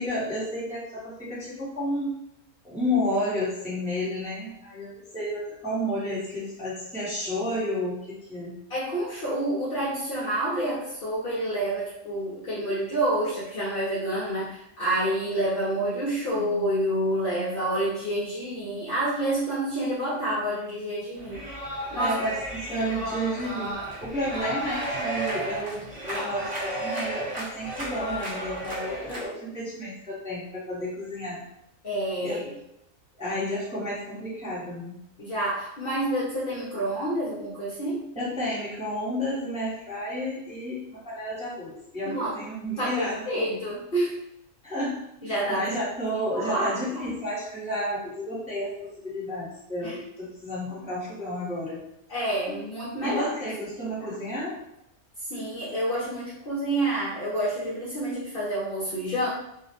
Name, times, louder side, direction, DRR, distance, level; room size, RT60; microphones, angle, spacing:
voice 1, 0.0-2.1 2.6-8.6 22.0-31.4 32.2-32.4 33.2-35.0 38.2-43.6 44.6-51.8 53.0-54.5, left 1 dB, 10° right, -9 dB, 0.5 m, -31 dB
voice 2, 8.7-21.4 21.9-22.1 31.8-32.5 35.2-38.1 42.0-42.4 42.8-44.2 45.2-45.6 46.3-47.0 49.8-49.9 52.1-53.3 55.3-59.3, right 1 dB, 55° left, -7 dB, 0.7 m, -28 dB
sound 1, 21.2-29.3, right 1 dB, 45° right, 1.0 m, -33 dB
2.4 x 2.0 x 2.7 m, 0.81 s
omnidirectional pair, 1.4 m